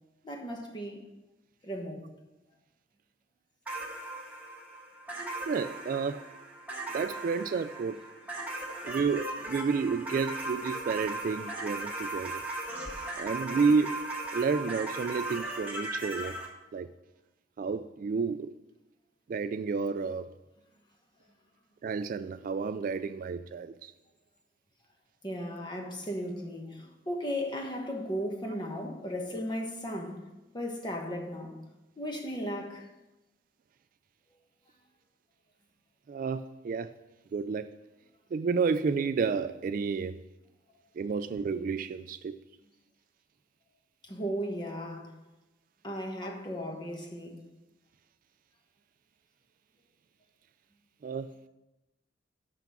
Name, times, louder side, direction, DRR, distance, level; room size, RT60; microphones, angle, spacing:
voice 1, 0.2-1.0 1.6-2.1 25.2-30.2 30.5-31.6 32.0-32.9 44.0-45.2 45.8-47.4, equal, 25° left, 1.2 m, -36 dB
sound 1, 3.7-16.5, right 2 dB, 10° right, 1.5 m, -38 dB
voice 2, 5.5-6.2 6.9-8.0 8.8-12.4 13.2-14.0 14.3-16.4 16.7-16.9 17.6-18.5 19.3-20.3 21.8-23.9 36.1-36.9 37.3-37.7 38.3-40.1 41.0-42.3 51.0-51.3, right 5 dB, 50° right, 0.3 m, -30 dB
5.9 x 5.9 x 7.1 m
head